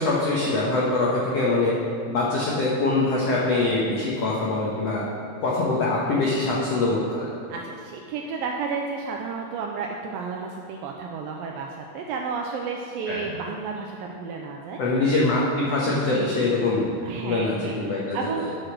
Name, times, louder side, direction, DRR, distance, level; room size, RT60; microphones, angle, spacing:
voice 1, 0.0-1.8 2.1-5.0 5.4-7.3 13.1-13.3 14.8-18.5, left 2 dB, 85° left, -5 dB, 1.4 m, -24 dB
voice 2, 7.5-14.8 15.8-16.5 17.1-17.8 18.1-18.6, right 5 dB, 90° right, 1 dB, 2.1 m, -32 dB
9.8 x 6.6 x 6.1 m, 2.5 s
omnidirectional pair, 4.7 m